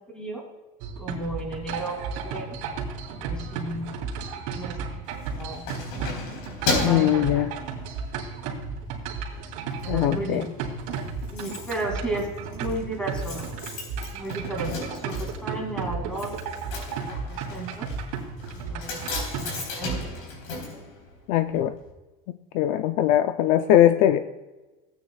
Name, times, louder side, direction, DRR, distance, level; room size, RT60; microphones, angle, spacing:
sound 1, 0.8-20.2, right 5 dB, 70° right, 2.8 m, -34 dB
voice 1, 1.0-2.6 3.2-3.9 4.5-5.6 6.6-7.4 9.8-10.5 11.3-13.6 14.1-16.6 17.2-17.9 18.7-19.0 19.3-20.0, right 2 dB, 5° left, 1 dB, 2.3 m, -34 dB
Keys jangling, 5.1-8.1 8.6-8.8 9.2-9.9 10.1-10.2 10.5-10.6 10.8-21.6 21.9-22.0, left 3 dB, 70° left, 3.8 m, -34 dB
voice 2, 6.8-7.5 9.9-10.4 21.3-21.8 22.5-24.2, left 12 dB, 55° left, 9 dB, 0.5 m, -20 dB
16.5 x 9.3 x 2.3 m, 1.1 s
cardioid pair, 175°, 17 cm